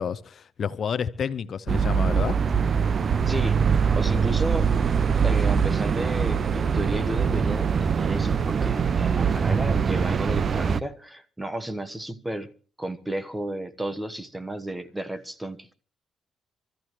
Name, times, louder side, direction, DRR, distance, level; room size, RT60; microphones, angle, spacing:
voice 1, 0.0-2.4, left 7 dB, 55° left, 0.6 m, -30 dB
sound 1, 1.7-10.8, right 6 dB, 45° right, 0.6 m, -23 dB
voice 2, 3.3-4.7 5.2-12.5 12.8-15.7, right 1 dB, 10° right, 1.2 m, -33 dB
25.5 x 14.0 x 3.1 m
cardioid pair, 90°, 0 cm